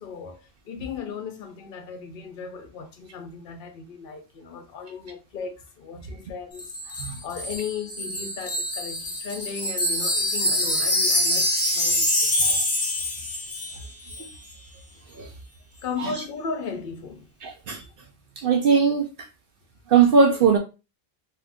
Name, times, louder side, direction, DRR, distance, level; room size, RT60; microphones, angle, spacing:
voice 1, 0.0-12.7 13.8-13.9 15.8-17.3, left 6 dB, 60° left, 0.8 m, -36 dB
Wind chime, 6.6-13.8 14.1-14.3, left 1 dB, 20° left, 0.4 m, -25 dB
voice 2, 17.4-17.8 18.4-19.3 19.9-20.6, right 5 dB, 60° right, 0.7 m, -20 dB
2.7 x 2.4 x 3.5 m
omnidirectional pair, 1.1 m